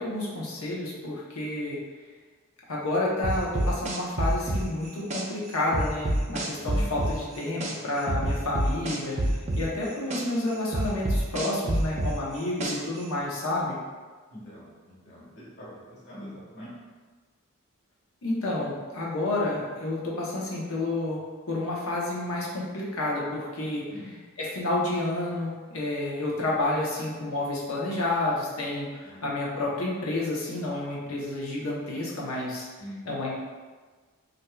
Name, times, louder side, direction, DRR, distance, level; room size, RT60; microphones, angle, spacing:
voice 1, 0.0-1.8 2.7-9.2 9.5-13.8 18.2-23.8 24.4-32.7 33.1-33.3, left 2 dB, 80° left, -4 dB, 0.8 m, -30 dB
sound 1, 3.2-5.2 5.7-7.7 8.1-10.2 10.7-13.0, right 1 dB, 30° right, 0.4 m, -27 dB
voice 2, 6.5-6.9 14.3-16.7 23.9-24.1 29.0-29.2 32.8-33.1, equal, 55° left, -8 dB, 1.3 m, -44 dB
4.2 x 2.6 x 2.3 m, 1.4 s
head